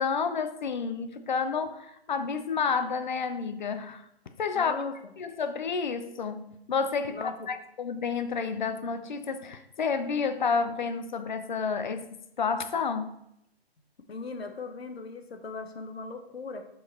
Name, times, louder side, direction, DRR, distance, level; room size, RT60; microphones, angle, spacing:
voice 1, 0.0-4.0 4.4-4.7 5.2-7.2 7.5-12.1 12.4-13.2, left 5 dB, 45° left, 9 dB, 0.6 m, -30 dB
voice 2, 4.5-5.1 7.1-7.5 14.1-16.6, left 4 dB, 75° left, 7 dB, 1.1 m, -38 dB
5.7 x 4.8 x 4.3 m, 0.78 s
hypercardioid pair, 150°, 32 cm